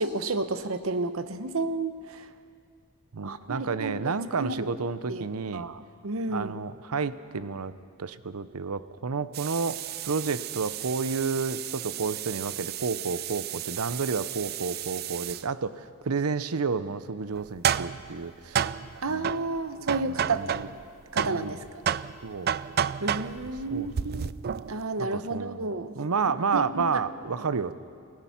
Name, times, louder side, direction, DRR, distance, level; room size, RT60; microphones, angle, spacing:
voice 1, 0.0-2.3 3.2-4.7 5.1-5.3 5.5-6.5 19.0-20.6 21.1-21.6 23.0-24.3 24.6-27.3, right 3 dB, 65° right, 11 dB, 0.9 m, -32 dB
voice 2, 3.1-5.7 6.3-7.7 8.0-9.8 10.0-18.7 19.1-19.3 20.0-20.7 21.2-21.6 22.2-22.5 23.7-23.9 25.0-25.6 26.0-27.7, right 5 dB, 85° right, 14 dB, 0.7 m, -30 dB
sound 1, 9.3-15.5 17.3-20.9 21.2-24.8, right 9 dB, 45° right, 0.4 m, -32 dB
28.0 x 16.5 x 5.8 m, 2.3 s
head